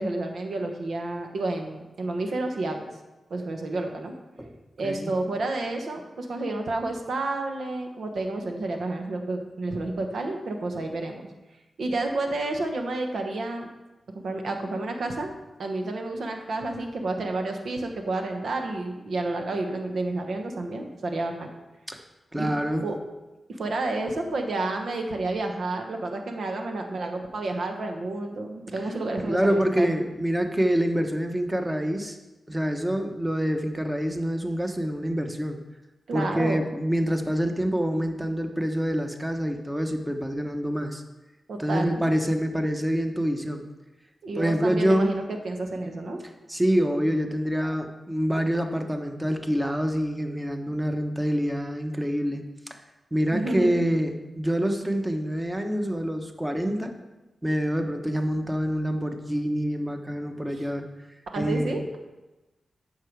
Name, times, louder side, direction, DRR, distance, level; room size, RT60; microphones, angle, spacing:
voice 1, 0.0-2.9 3.3-4.1 4.8-11.2 11.8-13.7 14.1-15.3 15.6-21.5 22.4-22.5 22.8-22.9 23.5-29.9 36.1-36.6 41.5-42.0 44.2-46.2 53.3-53.9 60.5-60.6 61.3-62.0, right 2 dB, 75° right, 4 dB, 1.1 m, -30 dB
voice 2, 4.8-5.1 21.9-22.0 22.3-22.8 29.2-32.2 32.5-35.6 36.1-41.0 41.6-43.7 44.4-45.1 46.5-52.8 53.1-56.9 57.4-60.9 61.4-61.7, equal, 15° right, 5 dB, 1.1 m, -26 dB
8.6 x 5.8 x 4.7 m, 1.1 s
cardioid pair, 45°, 0 cm